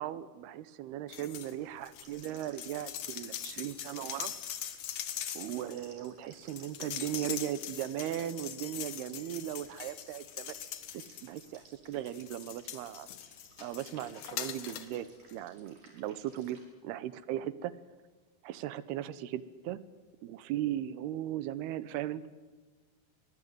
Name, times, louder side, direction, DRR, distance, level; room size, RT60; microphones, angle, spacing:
voice 1, 0.0-4.3 5.3-10.6 10.9-13.1 13.6-17.7 18.4-19.8 20.2-22.3, right 12 dB, 75° right, 16 dB, 2.7 m, -38 dB
sound 1, 1.1-1.5 1.8-11.6 12.1-15.0 15.3-15.4, left 10 dB, 60° left, 2.2 m, -42 dB
sound 2, 2.0-16.6, right 3 dB, 45° right, 6.5 m, -61 dB
24.0 x 19.0 x 9.5 m, 1.3 s
omnidirectional pair, 5.0 m